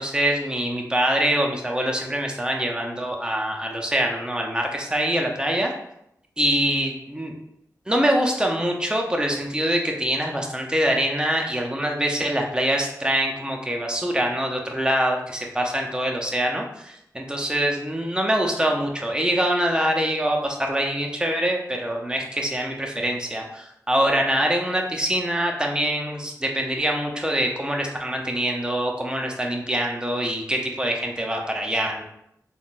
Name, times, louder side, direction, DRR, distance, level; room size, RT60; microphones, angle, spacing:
voice 1, 0.0-5.7 6.4-7.4 7.9-32.0, right 1 dB, 15° right, 1 dB, 0.6 m, -24 dB
3.6 x 2.2 x 2.4 m, 0.79 s
cardioid pair, 60°, 7 cm